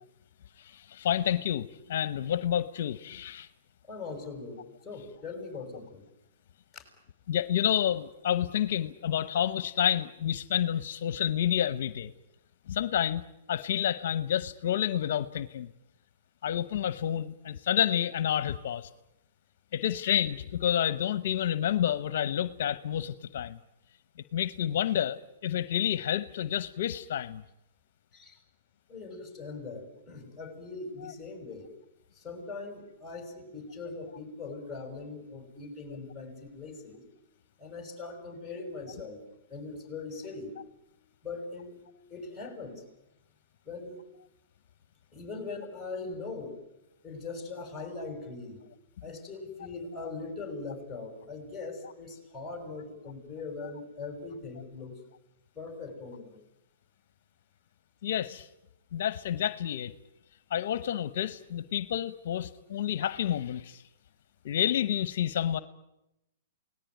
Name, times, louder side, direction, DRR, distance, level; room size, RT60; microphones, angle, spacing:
voice 1, 0.6-3.5 7.3-12.1 12.7-13.2 13.5-15.7 16.4-18.9 19.7-23.6 24.3-27.4 31.0-31.1 58.0-58.5 58.9-59.9 60.5-63.8 64.4-65.6, left 10 dB, 65° left, 15 dB, 0.9 m, -29 dB
voice 2, 3.9-6.0 6.7-6.8 28.1-28.4 28.9-31.7 32.2-37.0 37.6-39.2 39.5-40.5 41.2-41.8 42.1-42.8 43.7-44.0 45.1-46.5 47.0-48.6 49.0-55.0 55.6-56.4, left 3 dB, 5° left, 4 dB, 6.1 m, -41 dB
28.5 x 18.5 x 9.4 m, 0.89 s
hypercardioid pair, 145°, 0 cm